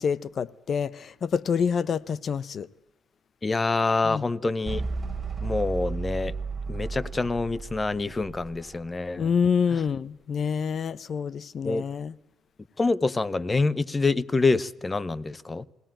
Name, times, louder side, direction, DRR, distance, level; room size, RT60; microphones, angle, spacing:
voice 1, 0.0-2.7 4.0-4.3 9.2-12.1, left 6 dB, 50° left, 0.7 m, -27 dB
voice 2, 3.4-4.8 5.4-6.3 6.7-9.3 11.6-11.8 12.8-15.7, left 3 dB, 25° left, 0.8 m, -26 dB
sound 1, 4.6-9.2, right 4 dB, 25° right, 3.3 m, -33 dB
21.5 x 17.5 x 8.9 m
cardioid pair, 90°, 0 cm